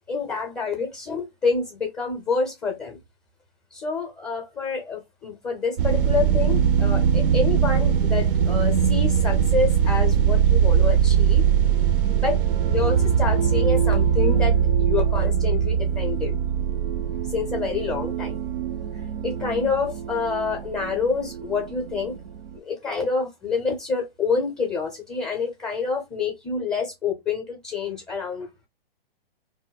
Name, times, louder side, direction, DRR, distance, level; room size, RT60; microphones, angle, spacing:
voice 1, 0.1-3.0 3.7-11.4 12.1-12.4 12.7-16.4 17.3-18.4 19.2-22.1 22.5-28.7, left 4 dB, 10° left, 0.6 m, -27 dB
sound 1, 5.8-22.6, right 8 dB, 60° right, 0.5 m, -21 dB
2.6 x 2.0 x 3.9 m
hypercardioid pair, 135°, 30 cm